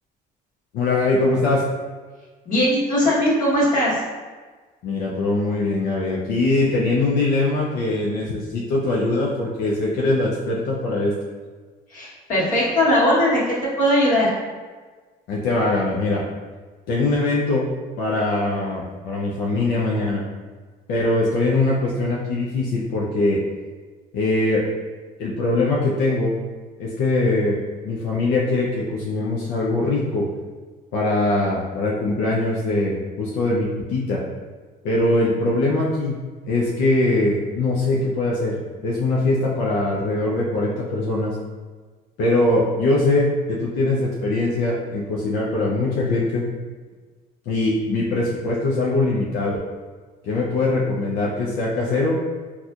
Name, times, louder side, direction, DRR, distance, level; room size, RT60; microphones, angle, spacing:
voice 1, 0.7-1.6 4.8-11.1 15.3-16.2 16.9-17.6 18.0-20.2 20.9-23.4 24.1-24.6 25.2-26.3 26.8-27.6 27.8-30.3 30.9-34.2 34.8-36.2 36.5-41.4 42.2-46.5 47.5-49.6 50.2-52.2, left 2 dB, 85° left, -5 dB, 0.6 m, -22 dB
voice 2, 2.5-4.0 11.9-13.4 13.8-14.3, left 1 dB, 50° left, -6 dB, 1.3 m, -19 dB
4.1 x 2.4 x 2.4 m, 1.4 s
cardioid pair, 110°, 17 cm